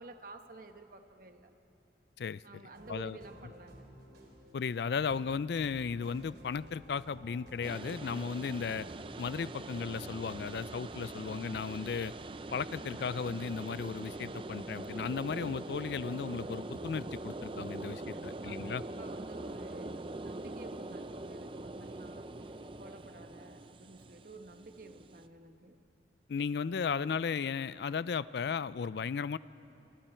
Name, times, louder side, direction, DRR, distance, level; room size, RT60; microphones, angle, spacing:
voice 1, 0.0-1.5 2.4-3.9 18.1-25.8, right 2 dB, 50° right, 7 dB, 1.2 m, -51 dB
sound 1, 2.7-12.3, equal, 75° right, 3.6 m, -54 dB
voice 2, 4.5-8.9 9.2-12.1 12.5-18.8 26.3-29.4, left 6 dB, 70° left, 18 dB, 0.4 m, -35 dB
sound 2, 7.6-25.3, right 2 dB, 30° right, 0.5 m, -43 dB
28.5 x 24.0 x 4.4 m, 2.9 s
head